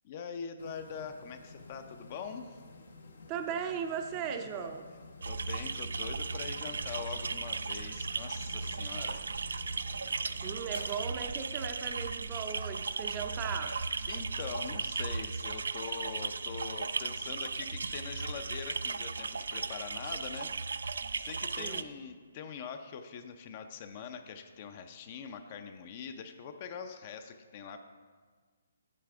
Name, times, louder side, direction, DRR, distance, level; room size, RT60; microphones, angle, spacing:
voice 1, 0.0-2.6 5.2-9.3 14.1-27.8, left 6 dB, 40° left, 8 dB, 0.5 m, -43 dB
sound 1, 0.6-11.0, left 3 dB, 80° left, 0.9 m, -52 dB
voice 2, 3.3-4.9 10.1-13.8 21.6-21.8, right 7 dB, 25° right, 6 dB, 0.5 m, -37 dB
sound 2, 5.2-21.8, right 4 dB, 80° right, 0.3 m, -36 dB
8.4 x 7.3 x 3.5 m, 1.5 s
hypercardioid pair, 150°, 0 cm